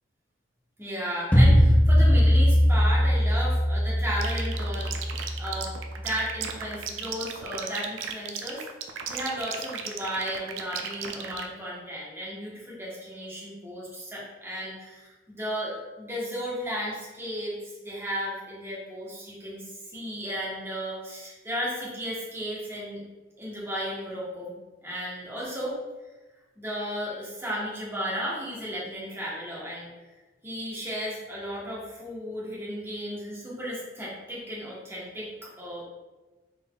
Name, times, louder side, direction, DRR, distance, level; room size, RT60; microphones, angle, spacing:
voice 1, 0.8-4.9 5.4-5.7 5.9-8.6 9.1-19.6 19.9-23.0 23.4-24.5 24.8-25.8 26.6-29.9 30.4-35.8, equal, 15° right, -6 dB, 1.1 m, -34 dB
sound 1, 1.3-6.3, equal, 5° left, 0.4 m, -21 dB
sound 2, 4.2-11.5, right 7 dB, 80° right, 0.4 m, -35 dB
3.9 x 3.8 x 2.3 m, 1.2 s
head